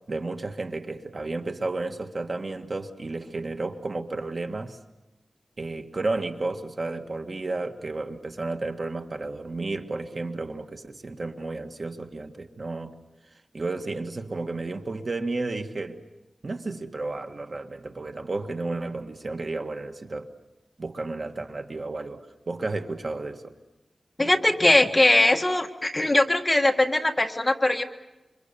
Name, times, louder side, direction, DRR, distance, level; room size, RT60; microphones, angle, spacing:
voice 1, 0.1-4.8 5.6-12.9 13.5-16.0 16.4-20.3 20.8-23.5, right 3 dB, 45° right, 6 dB, 1.6 m, -32 dB
voice 2, 24.2-27.8, left 1 dB, 20° left, 4 dB, 1.7 m, -21 dB
28.0 x 25.5 x 6.9 m, 1.0 s
wide cardioid pair, 115°, 0 cm